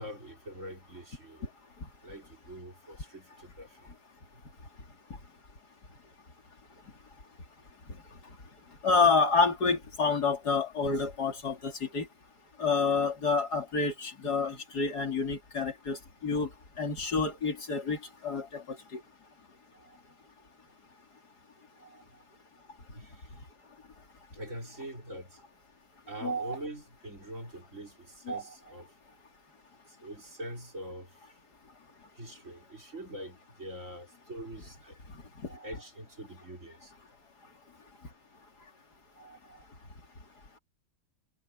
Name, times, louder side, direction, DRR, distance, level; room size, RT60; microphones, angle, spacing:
voice 1, 0.0-1.5 2.0-3.9 22.9-23.2 24.3-25.4 26.1-28.9 29.9-31.1 32.2-35.0 35.6-36.9, right 1 dB, 45° right, 5.2 m, -44 dB
voice 2, 8.8-12.1 12.6-16.5 16.8-18.0 18.2-19.0 26.2-26.6 28.3-28.4 35.4-35.7 39.2-39.4, left 4 dB, 65° left, 3.5 m, -28 dB
omnidirectional pair, 1.8 m